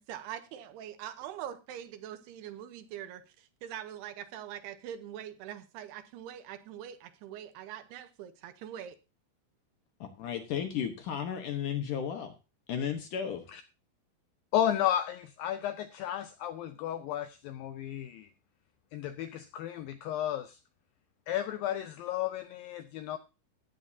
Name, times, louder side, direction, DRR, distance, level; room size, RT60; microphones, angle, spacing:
voice 1, 0.0-3.2 3.6-9.0, right 10 dB, 80° right, 10 dB, 2.9 m, -43 dB
voice 2, 10.0-12.3 12.7-13.4, left 8 dB, 65° left, 6 dB, 2.2 m, -34 dB
voice 3, 14.5-18.3 18.9-20.6 21.3-23.2, left 11 dB, 80° left, 9 dB, 2.1 m, -33 dB
14.5 x 10.5 x 2.7 m, 0.28 s
omnidirectional pair, 4.8 m